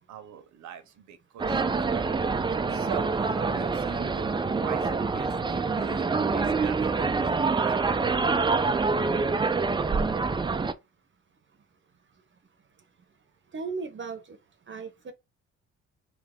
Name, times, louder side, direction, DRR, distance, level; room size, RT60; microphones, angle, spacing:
voice 1, 0.1-2.1 2.7-8.2, right 10 dB, 70° right, 0.9 m, -42 dB
sound 1, 1.4-10.7, right 4 dB, 15° right, 0.4 m, -26 dB
voice 2, 13.5-14.4 14.7-15.1, right 4 dB, 40° right, 0.9 m, -36 dB
3.4 x 2.8 x 3.6 m
cardioid pair, 90°, 30 cm